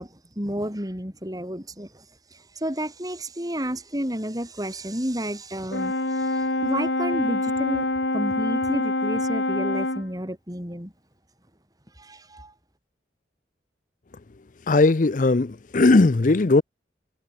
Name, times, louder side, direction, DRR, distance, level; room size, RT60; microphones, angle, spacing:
voice 1, 0.0-2.1 2.3-7.9 8.1-10.9 12.0-12.5, equal, 20° right, 5.9 m, -31 dB
Brass instrument, 5.7-10.1, left 2 dB, 75° left, 4.9 m, -25 dB
voice 2, 14.7-16.6, left 3 dB, 45° left, 0.6 m, -18 dB
head